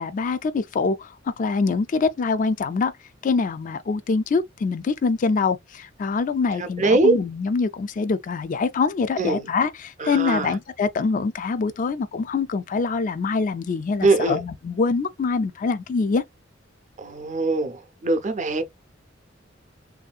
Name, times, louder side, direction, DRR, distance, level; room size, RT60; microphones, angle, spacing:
voice 1, 0.0-2.9 3.2-16.2, left 4 dB, 45° left, 0.3 m, -24 dB
voice 2, 6.6-7.2 9.2-9.5 10.0-10.5 14.0-14.4 17.0-18.6, right 2 dB, 40° right, 0.6 m, -22 dB
3.0 x 2.6 x 2.4 m
head